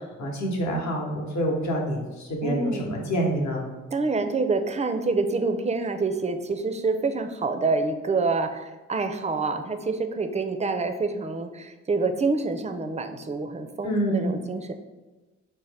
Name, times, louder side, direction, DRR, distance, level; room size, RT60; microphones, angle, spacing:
voice 1, 0.2-3.7 13.8-14.4, right 1 dB, 55° left, 0 dB, 1.0 m, -27 dB
voice 2, 2.4-3.0 3.9-14.7, right 3 dB, 20° right, 7 dB, 0.4 m, -27 dB
4.1 x 2.1 x 3.3 m, 1.2 s
supercardioid pair, 45°, 33 cm